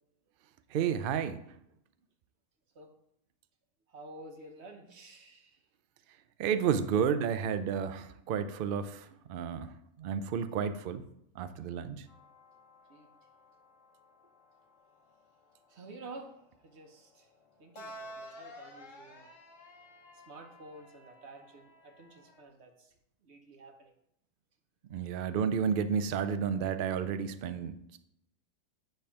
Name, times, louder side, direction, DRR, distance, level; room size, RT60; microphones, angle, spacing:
voice 1, 0.7-1.4 6.4-11.0 11.4-12.1 24.9-28.0, right 7 dB, 75° right, 11 dB, 0.5 m, -31 dB
voice 2, 3.9-5.6 12.9-13.1 15.7-17.3 17.6-19.3 20.3-22.9 23.2-23.9, right 2 dB, 55° right, 4 dB, 1.0 m, -50 dB
sound 1, 12.1-22.4, equal, 60° left, 1.4 m, -53 dB
9.0 x 3.4 x 5.7 m, 0.78 s
omnidirectional pair, 1.5 m